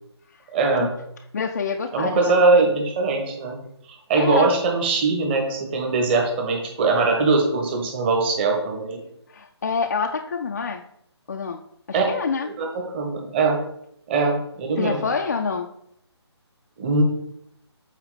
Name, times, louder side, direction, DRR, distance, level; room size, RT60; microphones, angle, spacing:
voice 1, 0.5-0.9 1.9-3.6 3.9-9.0 11.9-12.1 12.4-12.7 12.9-13.6 14.1-15.0 16.8-17.0, right 3 dB, 25° right, 2 dB, 1.3 m, -21 dB
voice 2, 1.3-2.6 4.2-4.5 9.3-10.8 11.3-11.6 11.9-12.5 14.8-15.7, left 5 dB, 40° left, 3 dB, 0.4 m, -27 dB
8.0 x 4.2 x 4.1 m, 0.74 s
figure-of-eight pair, 145°, 15 cm